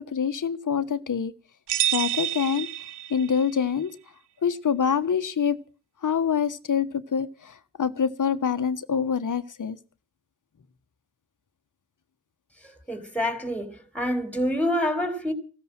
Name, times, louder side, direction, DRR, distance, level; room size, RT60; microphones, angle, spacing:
voice 1, 0.1-1.3 1.9-2.7 3.1-3.9 4.4-5.6 6.0-9.8, left 7 dB, 50° left, 1.4 m, -25 dB
sound 1, 1.7-3.5, right 12 dB, 85° right, 0.8 m, -28 dB
voice 2, 12.9-15.3, left 1 dB, 5° left, 3.8 m, -27 dB
16.0 x 14.0 x 6.1 m
cardioid pair, 70°, 40 cm